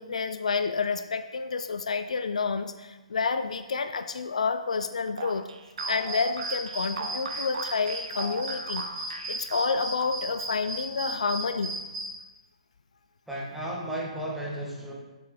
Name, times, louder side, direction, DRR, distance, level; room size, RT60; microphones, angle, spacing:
voice 1, 0.0-5.5 5.9-8.9 9.3-11.8, left 5 dB, 65° left, 10 dB, 0.3 m, -29 dB
sound 1, 5.2-10.5, right 4 dB, 60° right, 0.6 m, -39 dB
sound 2, 5.8-12.1, right 2 dB, 30° right, 1.8 m, -34 dB
voice 2, 13.3-14.9, right 1 dB, 5° right, -4 dB, 1.1 m, -34 dB
6.9 x 4.5 x 3.3 m, 1.1 s
figure-of-eight pair, 135°, 4 cm